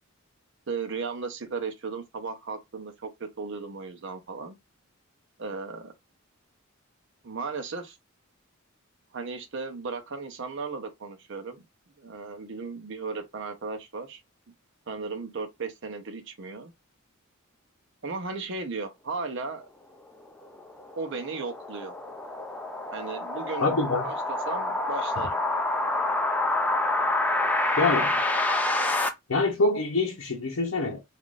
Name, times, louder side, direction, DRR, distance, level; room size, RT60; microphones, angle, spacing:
voice 1, 0.7-4.6 5.4-5.9 7.2-8.0 9.1-11.6 12.0-14.2 14.9-16.7 18.0-19.7 20.9-21.9 22.9-23.8 24.0-25.4, right 4 dB, 60° right, 0.7 m, -35 dB
sound 1, 20.4-29.1, left 2 dB, 5° left, 0.4 m, -27 dB
voice 2, 23.6-24.1 27.8-28.2 29.3-31.0, left 3 dB, 70° left, 0.7 m, -25 dB
3.5 x 2.5 x 2.4 m
head